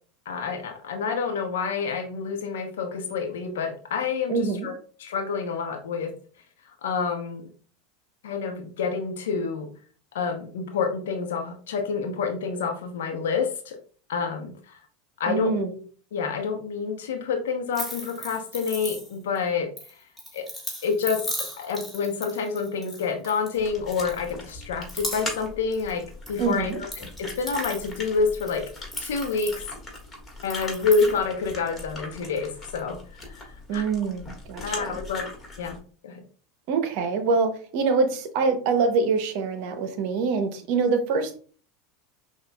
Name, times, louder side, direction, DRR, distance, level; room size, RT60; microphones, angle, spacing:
voice 1, 0.3-4.4 4.6-4.7 5.0-6.1 6.8-7.5 8.2-9.7 10.1-13.8 14.1-14.8 15.2-15.8 16.1-19.7 20.3-20.5 20.8-26.9 27.2-28.7 29.0-29.6 30.4-33.0 33.4-33.5 33.7-33.8 34.6-35.2 35.6-35.8 36.0-36.2, left 5 dB, 80° left, 5 dB, 0.8 m, -28 dB
voice 2, 4.3-4.7 15.3-15.7 26.4-26.8 33.7-35.0 36.7-41.4, right 4 dB, 60° right, 9 dB, 0.7 m, -25 dB
sound 1, 17.7-19.4 19.8-23.6 23.9-24.5 24.8-25.5 25.7-26.4 26.7-30.0 30.4-31.2, equal, ahead, 1.7 m, -37 dB
sound 2, 23.6-35.8, left 2 dB, 20° left, 1.6 m, -40 dB
5.8 x 2.4 x 2.3 m, 0.42 s
hypercardioid pair, 90°, 0 cm